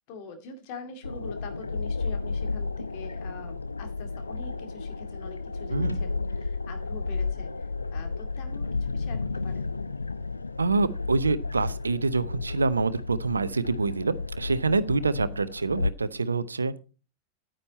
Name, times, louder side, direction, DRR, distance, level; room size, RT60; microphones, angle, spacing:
voice 1, 0.1-9.7, left 4 dB, 45° left, 6 dB, 2.4 m, -44 dB
sound 1, 1.0-15.9, left 4 dB, 80° left, 0.8 m, -32 dB
voice 2, 5.7-6.0 10.6-16.8, right 3 dB, 75° right, 16 dB, 0.6 m, -26 dB
9.6 x 9.1 x 4.1 m, 0.34 s
figure-of-eight pair, 90°, 0 cm